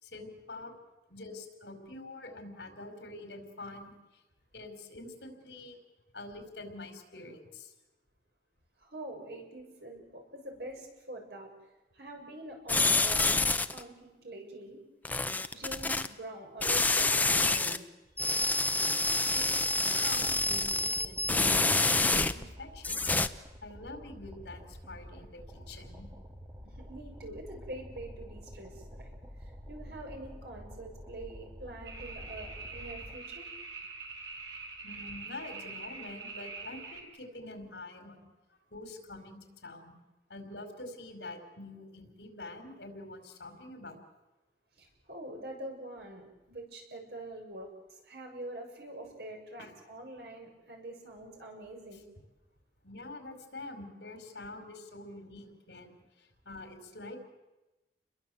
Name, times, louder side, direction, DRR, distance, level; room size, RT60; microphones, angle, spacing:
voice 1, 0.0-0.7 1.1-4.2 4.5-5.8 6.1-7.7 19.3-23.1 23.6-26.1 34.8-38.3 38.7-39.9 40.3-44.0 49.6-49.7 51.9-52.0 52.8-57.2, left 2 dB, 75° left, 6 dB, 4.8 m, -46 dB
voice 2, 8.8-11.5 11.9-14.8 15.5-17.8 26.6-29.1 29.4-33.5 44.8-52.1, right 1 dB, 65° right, 2 dB, 6.9 m, -45 dB
sound 1, 12.7-13.8 15.0-16.1 16.6-17.8 18.2-22.5 22.8-23.3, left 2 dB, 10° left, 0.9 m, -27 dB
sound 2, 19.8-33.2, equal, 20° right, 2.7 m, -49 dB
sound 3, 31.9-37.0, right 4 dB, 85° right, 6.1 m, -44 dB
29.5 x 22.0 x 8.0 m, 1.1 s
head